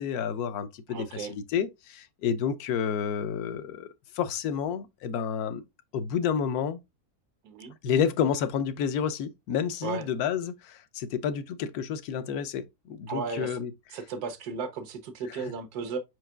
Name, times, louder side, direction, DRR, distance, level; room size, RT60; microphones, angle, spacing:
voice 1, 0.0-3.9 4.1-5.6 5.9-6.8 7.8-13.7 15.4-15.5, left 7 dB, 85° left, 1.1 m, -30 dB
voice 2, 0.9-1.3 7.4-7.7 9.8-10.0 13.1-13.6 13.9-16.0, right 5 dB, 85° right, 1.4 m, -35 dB
5.0 x 4.7 x 2.2 m
omnidirectional pair, 1.6 m